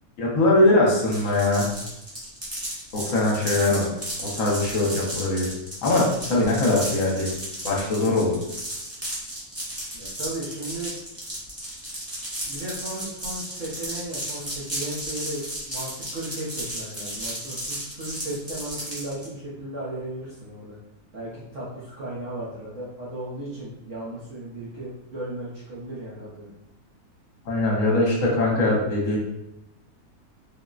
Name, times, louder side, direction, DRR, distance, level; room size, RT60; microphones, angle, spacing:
voice 1, 0.2-1.7 3.0-3.9 4.2-5.5 5.8-7.3 7.6-8.3 27.5-29.2, left 2 dB, 60° left, -3 dB, 1.1 m, -21 dB
sound 1, 1.1-19.3, right 1 dB, 25° right, 0.3 m, -34 dB
voice 2, 9.9-10.9 12.4-20.8 21.1-26.6, right 1 dB, 60° right, -9 dB, 1.0 m, -35 dB
3.7 x 2.1 x 2.4 m, 0.87 s
omnidirectional pair, 1.6 m